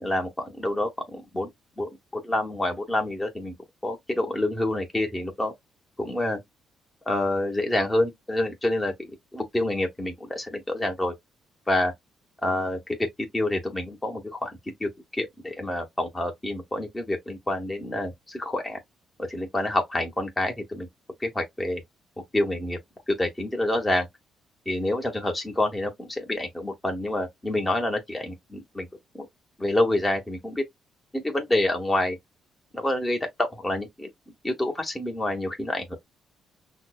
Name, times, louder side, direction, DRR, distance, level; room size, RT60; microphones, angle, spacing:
voice 1, 0.0-1.5 1.8-3.5 3.8-5.5 6.0-6.4 7.1-11.1 11.7-11.9 12.4-12.8 13.2-18.8 19.3-20.9 21.2-21.8 22.3-22.8 23.1-24.1 24.7-28.9 29.1-29.3 29.6-30.6 31.1-32.2 32.7-34.1 34.4-36.0, left 1 dB, 15° left, 1.0 m, -27 dB
5.6 x 2.1 x 2.2 m
cardioid pair, 90°, 0 cm